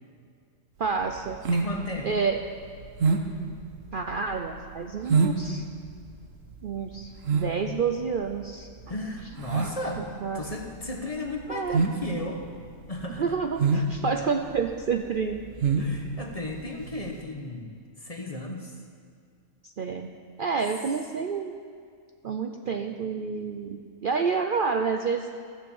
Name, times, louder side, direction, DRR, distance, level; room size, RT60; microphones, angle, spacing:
voice 1, 0.8-1.4 2.0-2.4 3.9-5.7 6.6-8.7 10.2-10.4 11.5-11.8 13.2-15.4 19.6-20.1 20.4-21.5 22.2-25.3, right 5 dB, 55° right, 4 dB, 0.6 m, -29 dB
sound 1, 0.8-17.2, right 4 dB, 70° right, 1.3 m, -28 dB
voice 2, 1.5-2.1 8.9-10.1 10.3-12.4 12.9-13.4 15.8-18.8, left 2 dB, 30° left, 2 dB, 1.0 m, -35 dB
15.0 x 7.0 x 7.2 m, 2.2 s
omnidirectional pair, 1.4 m